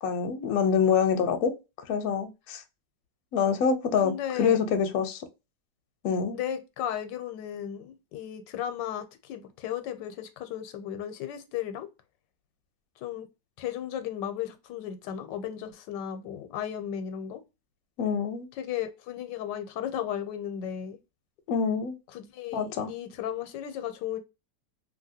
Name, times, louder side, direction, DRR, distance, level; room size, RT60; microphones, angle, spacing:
voice 1, 0.0-1.5 1.9-2.6 3.3-5.2 6.0-6.4 18.0-18.5 21.5-21.9 22.5-22.9, left 6 dB, 70° left, 1.0 m, -26 dB
voice 2, 4.0-4.6 6.3-11.9 13.0-13.3 13.6-17.4 18.6-21.0 22.1-24.2, left 10 dB, 85° left, 1.2 m, -35 dB
2.8 x 2.7 x 2.6 m
omnidirectional pair, 1.9 m